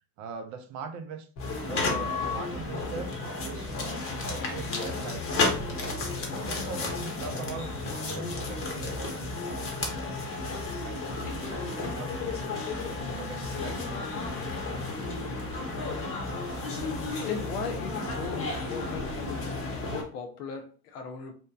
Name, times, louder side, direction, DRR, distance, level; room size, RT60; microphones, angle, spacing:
voice 1, 0.2-1.3 1.7-3.7 4.3-5.8 6.3-10.0 10.8-13.8, right 5 dB, 40° right, 7 dB, 0.4 m, -41 dB
sound 1, 1.4-20.0, left 1 dB, 65° left, 1.0 m, -38 dB
sound 2, 1.4-20.0, left 3 dB, 30° left, 0.9 m, -34 dB
voice 2, 17.2-21.3, left 5 dB, 85° left, 6 dB, 0.7 m, -37 dB
2.9 x 2.1 x 2.3 m, 0.40 s
hypercardioid pair, 85°, 46 cm